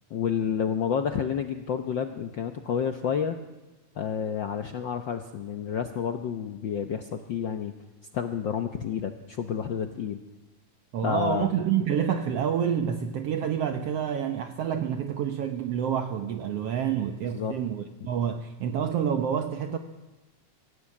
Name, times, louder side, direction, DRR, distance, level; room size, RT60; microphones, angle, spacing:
voice 1, 0.1-3.4 3.9-7.7 8.1-10.2 11.0-11.5 17.3-17.5 18.0-18.1, left 7 dB, 70° left, 7 dB, 1.1 m, -30 dB
voice 2, 10.9-19.8, right 8 dB, 65° right, 7 dB, 1.9 m, -28 dB
23.5 x 16.5 x 8.5 m, 1.2 s
omnidirectional pair, 3.3 m